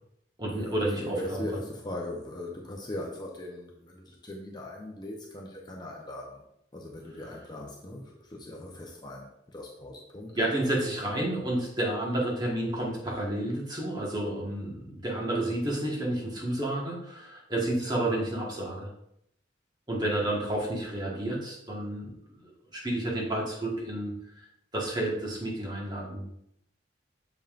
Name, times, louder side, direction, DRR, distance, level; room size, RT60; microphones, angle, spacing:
voice 1, 0.4-1.4 10.3-18.9 19.9-24.1 24.7-26.2, right 1 dB, 20° right, -3 dB, 1.3 m, -30 dB
voice 2, 1.0-6.5 6.7-10.3, left 1 dB, 25° left, -1 dB, 0.7 m, -39 dB
7.1 x 5.3 x 2.4 m, 0.75 s
head